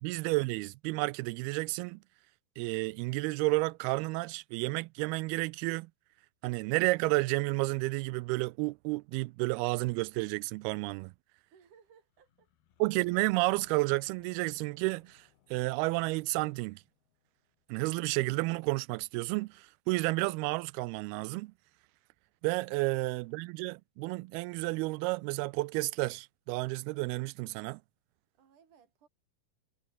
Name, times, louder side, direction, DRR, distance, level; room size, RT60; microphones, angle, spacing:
voice 1, 0.0-2.0 2.6-5.9 6.4-11.1 12.8-16.8 17.7-21.5 22.4-27.8, right 23 dB, 85° right, 2.5 m, -31 dB
voice 2, 11.5-12.5 28.3-29.1, right 7 dB, 55° right, 5.1 m, -62 dB
sound 1, 12.1-17.9, left 10 dB, 75° left, 4.1 m, -65 dB
omnidirectional pair, 4.4 m